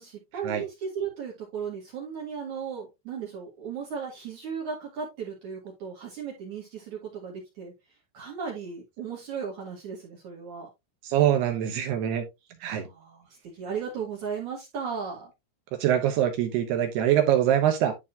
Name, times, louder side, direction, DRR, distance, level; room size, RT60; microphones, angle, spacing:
voice 1, 0.0-7.7 8.1-10.7 12.6-15.3, right 6 dB, 55° right, 2.3 m, -36 dB
voice 2, 11.0-12.2 12.6-12.9 15.8-17.9, right 10 dB, 75° right, 2.5 m, -23 dB
11.5 x 4.1 x 2.8 m
omnidirectional pair, 5.9 m